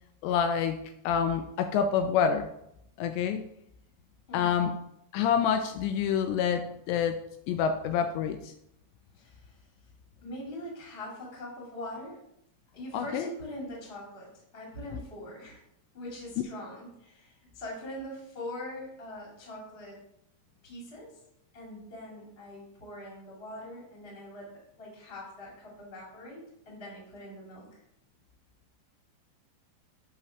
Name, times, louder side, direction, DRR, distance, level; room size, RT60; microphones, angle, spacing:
voice 1, 0.2-0.8 1.0-2.5 3.0-3.4 4.3-4.7 5.1-7.2 7.5-8.5 12.9-13.3, left 7 dB, 85° left, 6 dB, 2.6 m, -27 dB
voice 2, 9.1-9.7 10.2-12.2 12.7-14.3 14.5-15.6 15.9-20.0 20.6-21.2 21.5-24.5 24.7-27.8, left 1 dB, 25° left, -3 dB, 1.3 m, -42 dB
8.3 x 3.1 x 5.7 m, 0.77 s
omnidirectional pair, 5.2 m